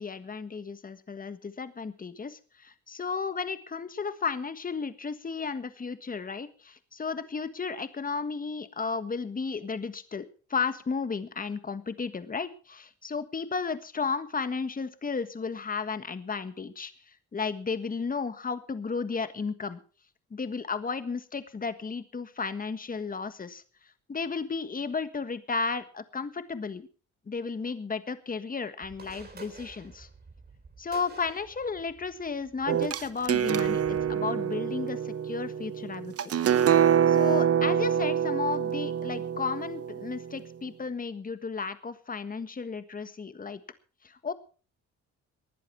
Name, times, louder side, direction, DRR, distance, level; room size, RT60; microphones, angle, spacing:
voice 1, 0.0-19.8 20.3-23.6 24.1-26.9 27.3-30.1 30.8-36.3 37.1-43.6 44.0-44.3, left 5 dB, 30° left, 12 dB, 1.5 m, -34 dB
sound 1, 28.8-34.1, right 4 dB, 30° right, 3.6 m, -51 dB
sound 2, 32.7-40.4, right 9 dB, 50° right, 1.0 m, -26 dB
19.5 x 11.0 x 4.6 m, 0.38 s
cardioid pair, 90°, 30 cm